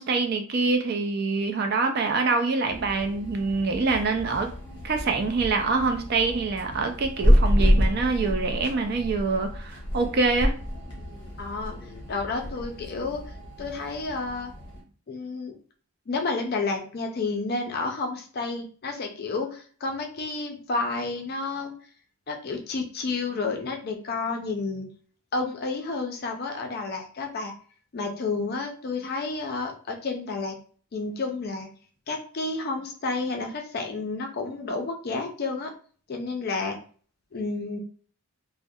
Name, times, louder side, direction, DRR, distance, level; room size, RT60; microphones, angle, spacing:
voice 1, 0.0-4.5 4.8-10.5, right 4 dB, 45° right, 5 dB, 0.3 m, -25 dB
sound 1, 2.7-14.8, equal, 20° left, 0.8 m, -28 dB
voice 2, 11.4-11.7 12.1-13.2 13.6-14.5 15.1-15.6 16.1-21.7 22.3-24.9 25.3-27.5 27.9-30.6 30.9-31.7 32.1-35.7 36.1-36.8 37.3-37.8, left 3 dB, 45° left, 3 dB, 0.4 m, -30 dB
2.3 x 2.1 x 2.6 m, 0.43 s
head